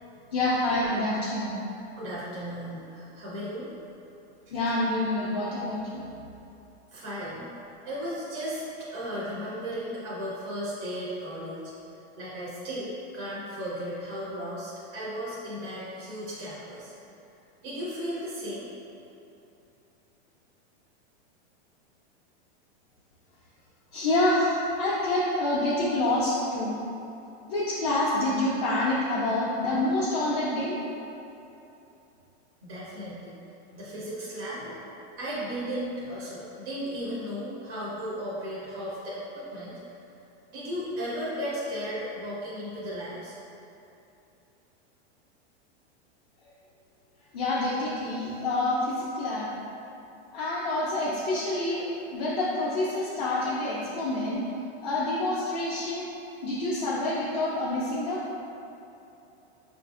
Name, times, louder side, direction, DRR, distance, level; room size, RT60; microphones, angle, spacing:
voice 1, 0.3-1.5 4.5-6.0 23.9-26.7 27.5-30.8 47.3-49.5 50.3-54.4 54.8-56.1 56.4-58.2, left 2 dB, 35° left, -7 dB, 0.4 m, -27 dB
voice 2, 2.0-3.7 4.5-4.6 5.9-6.0 6.9-7.5 7.9-11.7 12.2-16.9 17.6-18.7 32.6-33.4 33.7-34.8 35.2-39.8 40.5-43.4, equal, 25° right, -8 dB, 0.4 m, -35 dB
5.3 x 2.5 x 2.4 m, 2.9 s
supercardioid pair, 175°, 34 cm